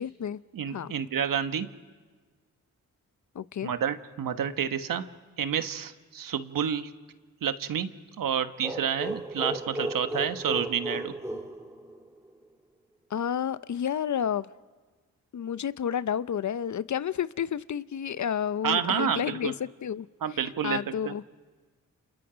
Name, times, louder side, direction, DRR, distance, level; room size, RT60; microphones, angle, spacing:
voice 1, 0.0-0.4 0.7-0.9 3.3-3.7 13.1-14.5 15.3-20.1 20.3-21.2, left 8 dB, 60° left, 0.8 m, -30 dB
voice 2, 0.5-1.7 3.6-5.1 5.4-6.9 7.4-7.9 8.2-11.1 18.6-19.5 20.2-21.1, right 8 dB, 75° right, 1.4 m, -29 dB
sound 1, 8.6-12.3, right 1 dB, 10° right, 4.2 m, -35 dB
30.0 x 28.0 x 5.1 m
supercardioid pair, 50°, 34 cm